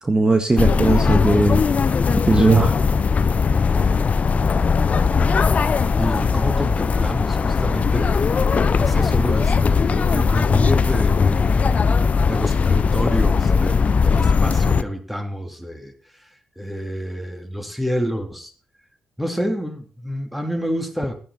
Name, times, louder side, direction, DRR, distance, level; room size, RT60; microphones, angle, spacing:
voice 1, 0.0-1.6 2.1-2.7, right 2 dB, 25° right, 5 dB, 1.9 m, -17 dB
sound 1, 0.6-14.8, left 5 dB, 45° left, 0.9 m, -19 dB
voice 2, 6.0-8.3 8.8-11.7 12.2-18.5 19.2-21.1, equal, 5° right, 5 dB, 3.5 m, -28 dB
16.5 x 11.5 x 4.4 m, 0.40 s
hypercardioid pair, 40°, 3 cm